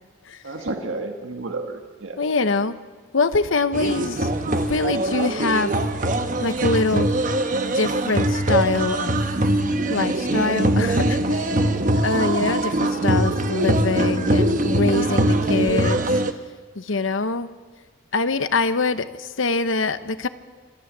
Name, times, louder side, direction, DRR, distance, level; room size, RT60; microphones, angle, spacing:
voice 1, 0.4-2.2 15.5-16.1, right 2 dB, 80° right, 4 dB, 1.7 m, -31 dB
voice 2, 2.2-2.7 3.1-5.7 6.4-7.1 7.7-9.1 9.9-11.7 11.9-16.0 16.8-17.5 18.1-20.3, left 3 dB, 80° left, 12 dB, 0.9 m, -24 dB
sound 1, 3.7-16.3, right 1 dB, 40° right, 1.1 m, -22 dB
27.0 x 13.5 x 7.4 m, 1.4 s
head